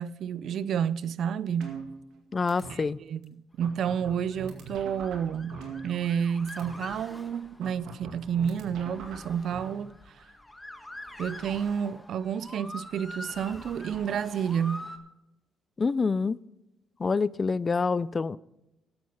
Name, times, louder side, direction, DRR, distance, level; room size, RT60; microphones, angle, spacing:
voice 1, 0.0-1.8 2.7-5.6 5.8-9.9 11.2-14.9, right 8 dB, 65° right, 0.4 m, -30 dB
sound 1, 1.6-2.2 2.5-2.7 3.2-3.3 3.6-6.2 6.5-6.7 7.6-9.6, right 5 dB, 85° right, 2.0 m, -41 dB
voice 2, 2.3-3.0 15.8-16.4 17.0-18.4, left 4 dB, 35° left, 0.3 m, -26 dB
Motor vehicle (road) / Siren, 3.9-15.0, left 1 dB, 10° left, 1.2 m, -45 dB
12.5 x 7.7 x 5.7 m
cardioid pair, 90°, 0 cm